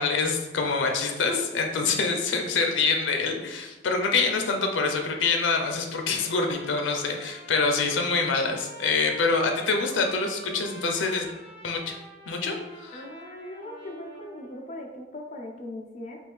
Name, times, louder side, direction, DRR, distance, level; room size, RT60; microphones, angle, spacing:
voice 1, 0.0-11.3 11.6-12.0 12.3-13.0, left 4 dB, 85° left, 4 dB, 0.5 m, -26 dB
Trumpet, 6.0-14.6, right 1 dB, 35° right, 1.2 m, -46 dB
voice 2, 12.9-16.2, left 1 dB, 40° left, 2 dB, 0.5 m, -39 dB
3.5 x 2.5 x 3.2 m, 1.1 s
head